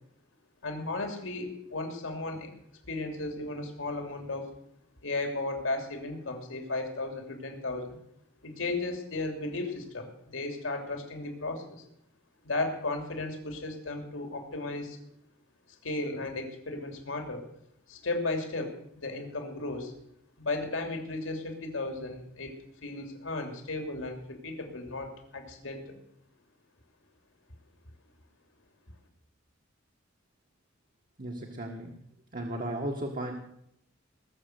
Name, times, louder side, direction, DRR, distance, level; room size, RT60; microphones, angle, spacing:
voice 1, 0.6-2.5 2.9-4.5 5.0-8.0 8.4-11.8 12.4-15.0 15.8-17.5 17.9-19.9 20.4-26.0, left 2 dB, 75° left, 3 dB, 3.0 m, -35 dB
voice 2, 31.2-32.0 32.3-33.3, right 1 dB, 45° right, 1 dB, 1.7 m, -35 dB
20.0 x 7.2 x 8.0 m, 0.74 s
head